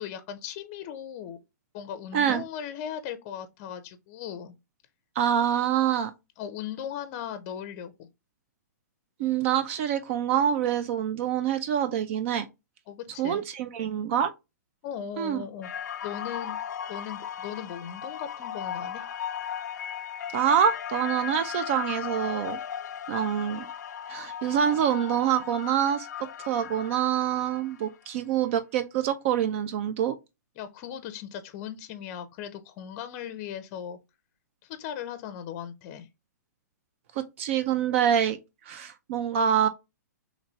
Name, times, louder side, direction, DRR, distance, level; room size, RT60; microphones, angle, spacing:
voice 1, 0.0-1.4 1.7-4.6 6.4-8.1 12.9-13.4 14.8-15.7 16.0-16.6 16.9-19.0 30.6-34.0 34.6-36.1, left 9 dB, 35° left, 0.5 m, -38 dB
voice 2, 5.2-6.1 9.2-12.5 13.2-14.3 15.2-15.4 20.3-22.6 23.1-23.7 24.1-26.1 26.4-30.1 37.2-38.4 38.7-39.7, right 9 dB, 45° right, 0.4 m, -26 dB
sound 1, 15.6-27.9, left 9 dB, 90° left, 0.4 m, -37 dB
3.0 x 2.6 x 4.2 m
hypercardioid pair, 145°, 9 cm